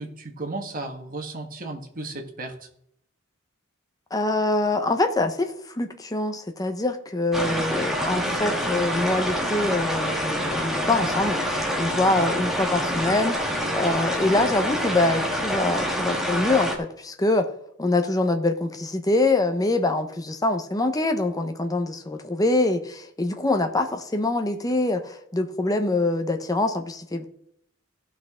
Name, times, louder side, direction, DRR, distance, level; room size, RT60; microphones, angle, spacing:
voice 1, 0.0-2.5 11.9-12.3, right 2 dB, 45° right, 1.7 m, -34 dB
voice 2, 4.1-17.5 17.8-27.3, left 2 dB, 20° left, 0.9 m, -24 dB
sound 1, 7.3-16.8, equal, ahead, 1.6 m, -26 dB
16.0 x 6.0 x 3.7 m
head